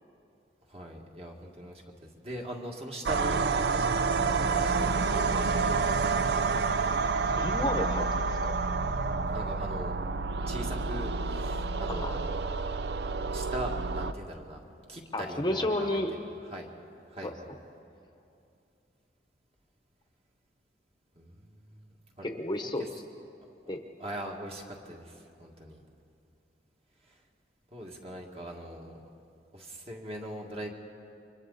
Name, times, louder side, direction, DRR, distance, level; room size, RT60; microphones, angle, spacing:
voice 1, 0.7-6.5 9.3-10.0 10.5-12.3 13.3-14.6 14.9-16.0 16.5-16.7 17.1-17.5 21.2-21.8 22.2-22.7 24.0-25.8 27.1-27.2 27.7-29.0 29.5-30.7, right 1 dB, 35° right, 0 dB, 2.1 m, -41 dB
sound 1, 3.1-14.1, right 4 dB, 65° right, 0.6 m, -29 dB
voice 2, 7.4-8.5 11.9-12.2 15.1-16.1 17.2-17.3 22.2-22.8 23.7-23.8, left 1 dB, 25° left, 5 dB, 1.0 m, -31 dB
30.0 x 24.5 x 4.2 m, 2.6 s
head